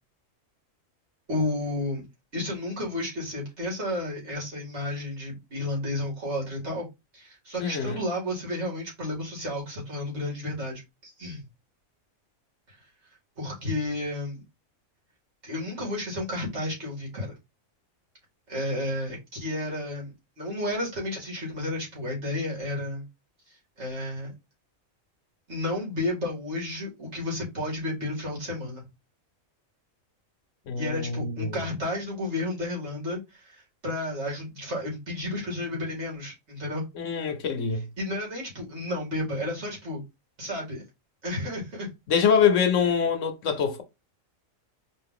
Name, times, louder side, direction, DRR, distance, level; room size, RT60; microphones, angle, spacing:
voice 1, 1.3-2.0 2.3-6.9 7.1-11.4 12.7-12.8 13.4-14.4 15.4-17.3 18.5-23.1 23.8-24.3 25.5-28.8 30.8-36.9 38.0-40.0 40.4-40.8 41.2-41.9, left 1 dB, 55° right, 2.5 m, -32 dB
voice 2, 7.6-8.0 30.7-31.6 36.9-37.8 42.1-43.8, left 6 dB, 70° left, 1.1 m, -24 dB
4.4 x 2.5 x 3.6 m
omnidirectional pair, 1.4 m